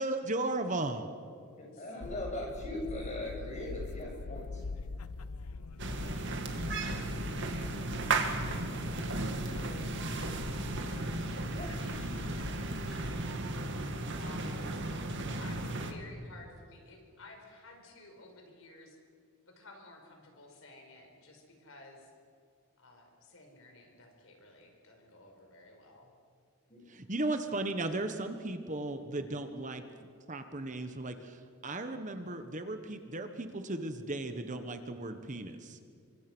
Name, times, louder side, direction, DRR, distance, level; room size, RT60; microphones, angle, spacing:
voice 1, 0.0-1.1 26.9-29.8 30.3-35.8, right 2 dB, 35° right, 8 dB, 1.3 m, -36 dB
voice 2, 1.8-4.6 11.5-11.7 26.7-26.8, left 1 dB, 30° left, -1 dB, 6.9 m, -39 dB
sound 1, 2.0-13.2, left 3 dB, 85° left, 0.7 m, -43 dB
sound 2, 5.8-15.9, right 2 dB, 55° right, 2.2 m, -35 dB
voice 3, 7.0-7.8 9.0-13.3 14.1-14.9 15.4-19.0 19.5-22.1 22.8-26.1 26.7-27.3, left 2 dB, 65° left, 3 dB, 5.1 m, -53 dB
28.5 x 24.5 x 6.2 m, 2.3 s
head